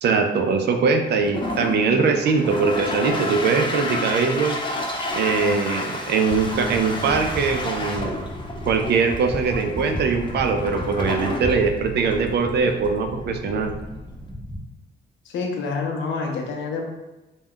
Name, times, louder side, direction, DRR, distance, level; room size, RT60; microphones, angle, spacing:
voice 1, 0.0-4.6 5.1-8.1 8.7-13.7, right 5 dB, 55° right, 5 dB, 0.4 m, -21 dB
Toilet flush, 1.1-14.3, left 1 dB, 25° left, 0.4 m, -31 dB
sound 1, 6.3-14.6, equal, 5° right, 0.7 m, -34 dB
voice 2, 15.3-16.9, left 4 dB, 75° left, 1 dB, 0.6 m, -27 dB
2.2 x 2.1 x 3.5 m, 1.1 s
cardioid pair, 90°, 20 cm